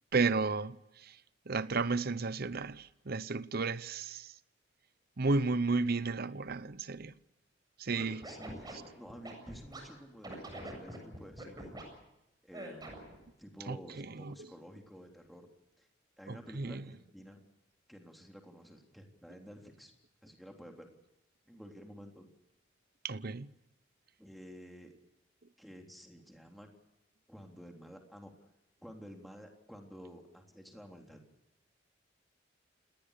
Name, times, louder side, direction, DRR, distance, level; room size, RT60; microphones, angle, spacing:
voice 1, 0.1-1.2 1.5-4.3 5.2-7.1 7.8-8.3 13.7-14.3 16.3-16.8 23.0-23.5, right 3 dB, 55° right, 0.8 m, -33 dB
Scratching (performance technique), 7.9-9.8 10.2-11.8 12.5-13.2, right 1 dB, 20° right, 7.6 m, -44 dB
voice 2, 8.2-11.8 12.4-13.0 13.4-15.5 15.8-15.9 16.2-17.4 17.9-19.9 20.2-20.9 21.5-22.3 24.2-24.9 25.6-26.7 27.3-28.3 28.8-31.2, equal, ahead, 3.5 m, -51 dB
29.0 x 19.0 x 6.7 m
head